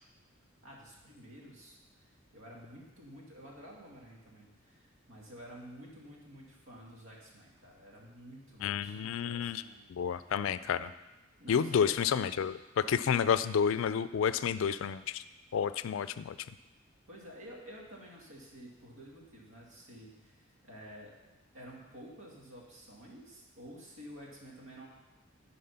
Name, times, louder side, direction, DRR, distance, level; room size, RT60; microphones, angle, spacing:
voice 1, 0.6-10.3 11.4-12.1 13.1-13.2 17.1-21.1 21.5-24.9, equal, 85° right, -2 dB, 2.0 m, -51 dB
voice 2, 8.6-9.6 9.9-10.9 11.5-15.2 15.5-16.3, left 7 dB, 70° left, 14 dB, 0.3 m, -30 dB
10.5 x 4.2 x 5.6 m, 1.1 s
head